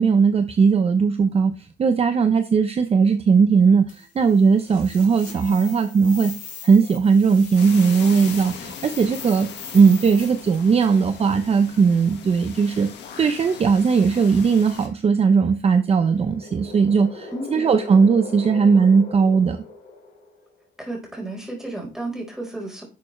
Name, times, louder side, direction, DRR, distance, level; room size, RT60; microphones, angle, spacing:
voice 1, 0.0-6.3 6.6-9.5 9.7-12.9 13.2-19.6, right 5 dB, 35° right, 8 dB, 0.8 m, -18 dB
sound 1, 3.9-11.1, left 5 dB, 45° left, 4.0 m, -40 dB
sound 2, 7.6-14.9, left 8 dB, 85° left, 1.7 m, -40 dB
sound 3, 12.9-14.0 14.4-14.5 15.8-20.6, left 3 dB, 65° left, 4.0 m, -40 dB
voice 2, 17.3-17.6 20.8-22.8, right 2 dB, 5° right, -1 dB, 4.3 m, -32 dB
11.5 x 6.9 x 3.2 m, 0.33 s
cardioid pair, 140°, 18 cm